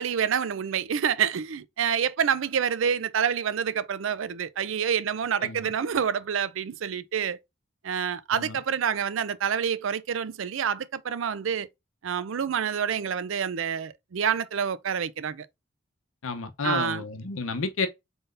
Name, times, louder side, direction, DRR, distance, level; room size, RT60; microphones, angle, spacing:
voice 1, 0.0-7.4 7.8-11.7 12.0-15.5 16.6-17.0, right 7 dB, 75° right, 0.4 m, -27 dB
voice 2, 16.2-17.9, left 4 dB, 85° left, 0.7 m, -31 dB
4.0 x 3.9 x 2.5 m
head